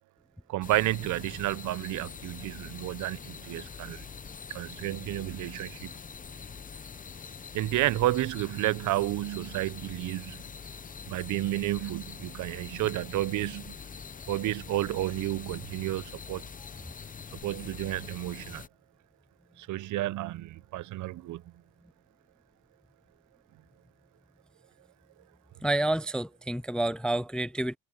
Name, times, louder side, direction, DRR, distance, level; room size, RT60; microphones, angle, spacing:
voice 1, 0.5-4.1 4.5-5.9 7.5-10.4 11.1-13.8 14.3-16.4 17.4-18.6 19.6-21.4, right 16 dB, 80° right, 0.7 m, -31 dB
sound 1, 0.6-18.7, left 6 dB, 25° left, 0.7 m, -44 dB
voice 2, 25.6-27.8, right 1 dB, 5° left, 0.3 m, -29 dB
cardioid pair, 90°, 30 cm